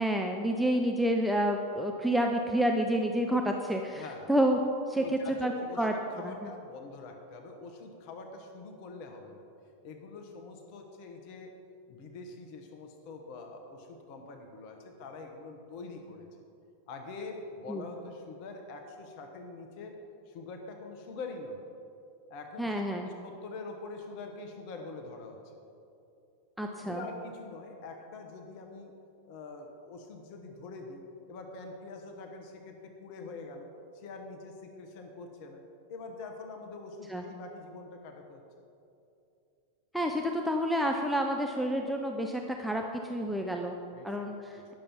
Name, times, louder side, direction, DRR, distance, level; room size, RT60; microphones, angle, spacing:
voice 1, 0.0-4.6 4.9-5.0 5.4-5.5 5.8-5.9 6.2-6.3 17.7-17.9 22.6-23.1 26.6-27.0 37.1-37.2 39.9-43.8 44.0-44.7, equal, ahead, 2 dB, 0.6 m, -29 dB
voice 2, 3.9-4.3 5.0-9.4 9.8-11.5 11.9-16.3 16.9-20.0 20.3-21.6 22.3-25.4 26.8-28.9 29.3-31.0 31.3-33.7 33.9-35.6 35.9-38.4 43.9-44.2, left 3 dB, 45° left, 4 dB, 1.1 m, -44 dB
10.0 x 6.9 x 5.7 m, 2.7 s
figure-of-eight pair, 90°, 0 cm